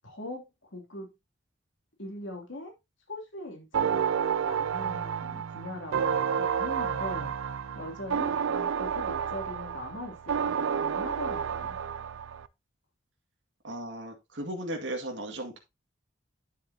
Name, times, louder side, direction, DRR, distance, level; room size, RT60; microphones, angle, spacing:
voice 1, 0.0-0.4 0.7-1.1 2.0-2.7 3.1-6.1 6.4-7.3 7.7-11.8, left 1 dB, 65° left, 2 dB, 2.9 m, -41 dB
sound 1, 3.7-12.5, right 7 dB, 80° right, 0.5 m, -30 dB
voice 2, 13.6-15.6, right 1 dB, 65° right, 2 dB, 2.0 m, -36 dB
10.0 x 7.1 x 2.8 m, 0.22 s
head